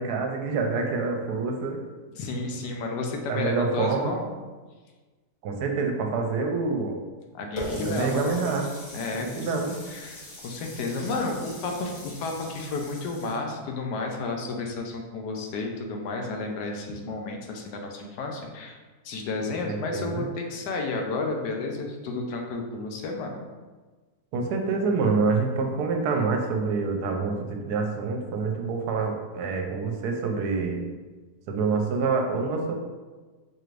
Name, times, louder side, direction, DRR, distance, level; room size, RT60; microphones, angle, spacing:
voice 1, 0.0-1.8 3.3-4.2 5.4-7.0 7.7-8.7 9.1-9.8 19.6-20.3 24.3-30.8 31.5-32.7, right 4 dB, 75° right, 3 dB, 1.1 m, -27 dB
voice 2, 2.2-4.2 7.3-8.4 8.9-9.5 9.9-18.8 19.0-23.4, left 3 dB, 85° left, 2 dB, 1.2 m, -32 dB
Water tap faucet, 7.6-13.4, left 1 dB, 50° left, 1.0 m, -40 dB
4.5 x 3.2 x 2.5 m, 1.3 s
omnidirectional pair, 1.7 m